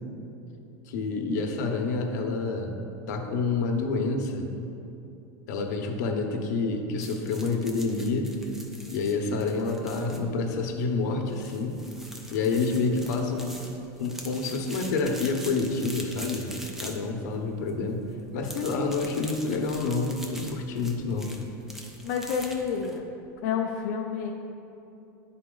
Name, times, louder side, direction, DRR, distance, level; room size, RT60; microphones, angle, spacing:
voice 1, 0.9-2.8 3.1-4.5 5.5-8.3 8.9-11.8 12.3-13.7 14.0-18.0 18.3-21.3, left 3 dB, 70° left, 3 dB, 0.9 m, -28 dB
sound 1, 7.0-23.0, equal, 5° right, 0.5 m, -44 dB
voice 2, 22.0-23.0 23.4-24.3, left 6 dB, 55° left, -1 dB, 0.5 m, -29 dB
10.5 x 4.1 x 3.8 m, 2.8 s
supercardioid pair, 170°, 10 cm